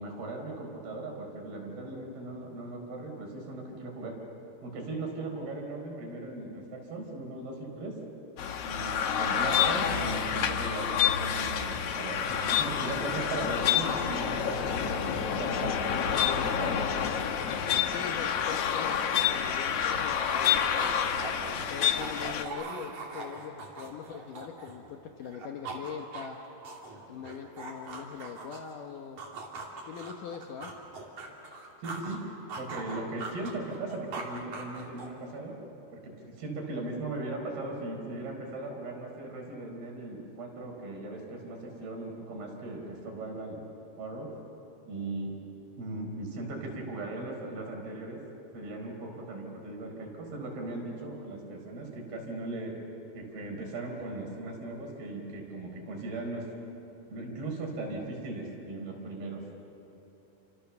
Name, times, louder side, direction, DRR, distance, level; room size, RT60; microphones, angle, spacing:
voice 1, 0.0-4.2 4.6-8.0 8.7-16.8 21.5-21.6 31.8-32.2 32.6-35.6 35.9-43.6 44.0-44.3 44.9-45.3 45.8-48.2 48.5-52.7 53.1-56.5 57.1-59.4, right 2 dB, 70° right, 1 dB, 6.2 m, -38 dB
sound 1, 8.4-22.4, left 8 dB, 85° left, 1.3 m, -28 dB
voice 2, 17.9-20.9 21.7-26.4 27.1-29.2 29.9-30.7, left 7 dB, 65° left, 4 dB, 2.3 m, -41 dB
sound 2, 19.4-24.9 25.2-28.7 29.2-32.2 32.5-35.2, right 3 dB, 50° right, 4.0 m, -41 dB
30.0 x 27.5 x 7.1 m, 2.9 s
omnidirectional pair, 4.7 m